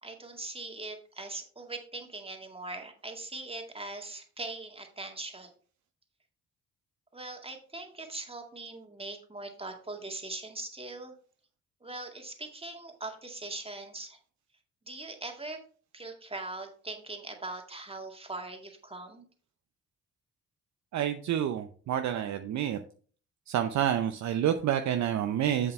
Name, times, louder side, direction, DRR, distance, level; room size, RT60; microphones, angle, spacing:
voice 1, 0.0-5.5 7.1-11.2 11.8-14.2 14.9-15.6 15.9-19.3, right 2 dB, 15° right, 3 dB, 2.0 m, -41 dB
voice 2, 20.9-22.8 23.5-25.7, right 10 dB, 50° right, 7 dB, 0.7 m, -28 dB
7.9 x 7.3 x 3.2 m, 0.43 s
figure-of-eight pair, 45°, 36 cm